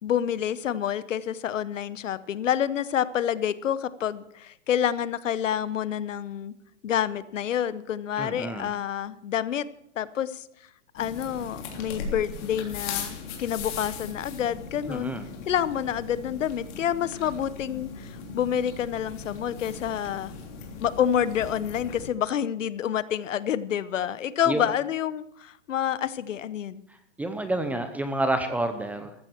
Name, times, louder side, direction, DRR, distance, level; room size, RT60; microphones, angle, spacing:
voice 1, 0.0-6.5 6.8-9.7 10.0-10.4 10.9-15.1 15.5-20.3 20.8-26.8, left 9 dB, 80° left, 16 dB, 1.0 m, -28 dB
voice 2, 8.2-8.7 14.9-15.2 24.5-24.7 27.2-29.1, right 2 dB, 5° right, 8 dB, 0.7 m, -29 dB
sound 1, 11.0-22.1, left 5 dB, 40° left, 3.3 m, -39 dB
14.5 x 14.0 x 4.6 m, 0.74 s
hypercardioid pair, 145°, 37 cm